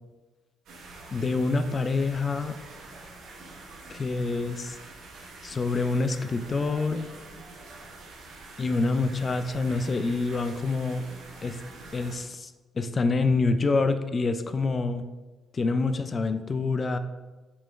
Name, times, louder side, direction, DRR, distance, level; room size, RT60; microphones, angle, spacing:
sound 1, 0.7-12.2, right 3 dB, 80° right, 0.9 m, -46 dB
voice 1, 1.1-2.5 3.9-4.8 5.4-7.0 8.6-11.0 11.4-11.6 11.9-12.5 12.8-15.1 15.5-17.0, left 3 dB, 35° left, 10 dB, 0.4 m, -26 dB
5.4 x 3.0 x 3.2 m, 1.2 s
cardioid pair, 90°, 0 cm